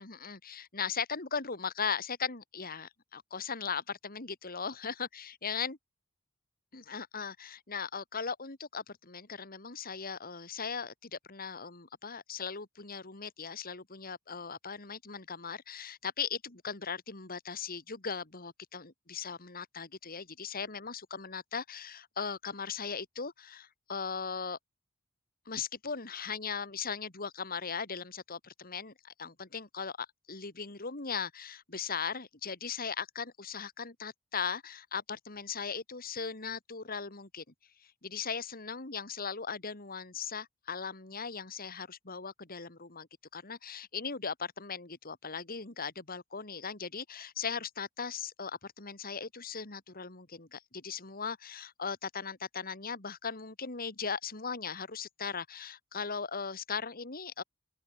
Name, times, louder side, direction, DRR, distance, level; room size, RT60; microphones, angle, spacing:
voice 1, 0.0-5.8 6.7-24.6 25.5-37.4 38.0-43.1 43.3-57.4, left 6 dB, 45° left, 2.7 m, -38 dB
open air
head